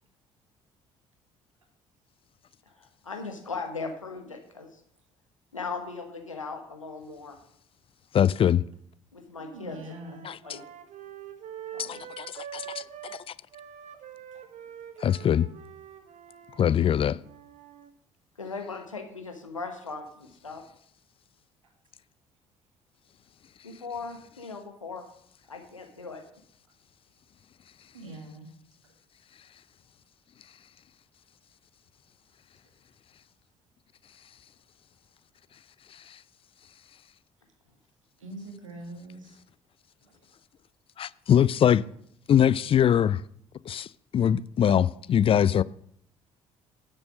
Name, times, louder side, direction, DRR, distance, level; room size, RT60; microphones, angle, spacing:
voice 1, 2.7-4.8 5.5-7.4 9.1-9.9 10.4-10.6 11.7-12.0 18.4-20.6 23.6-25.1 25.5-26.2, left 4 dB, 90° left, 1.2 m, -38 dB
voice 2, 8.1-8.6 10.2-10.3 11.8-12.8 15.0-15.5 16.6-17.2 41.0-41.8 42.3-43.2 43.7-43.9 44.1-45.6, left 9 dB, 35° left, 0.4 m, -22 dB
sound 1, 9.4-13.2 13.5-17.9, right 10 dB, 50° right, 1.2 m, -45 dB
voice 3, 9.5-10.3 12.0-12.1 14.3-14.4 14.9-15.1 15.3-15.4 27.9-28.5 28.8-28.9 38.2-39.4 40.0-40.2, right 2 dB, 85° right, 1.8 m, -43 dB
10.5 x 7.0 x 6.1 m
figure-of-eight pair, 50°, 16 cm